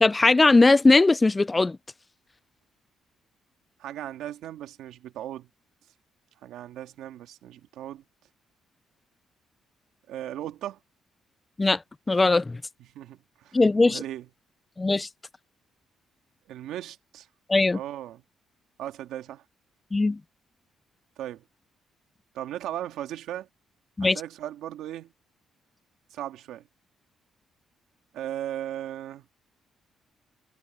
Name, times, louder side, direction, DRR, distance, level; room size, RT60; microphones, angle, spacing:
voice 1, 0.0-1.8 11.6-11.8 12.1-12.6 13.5-14.0 14.8-15.1 17.5-17.8 19.9-20.2 24.0-24.2, left 3 dB, 20° left, 0.3 m, -19 dB
voice 2, 3.8-5.5 6.4-8.0 10.1-10.8 13.0-14.3 16.5-17.3 17.7-18.2 18.8-19.4 21.2-21.4 22.3-23.5 24.0-25.1 26.1-26.6 28.1-29.2, right 12 dB, 85° right, 1.9 m, -37 dB
cardioid pair, 90°, 0 cm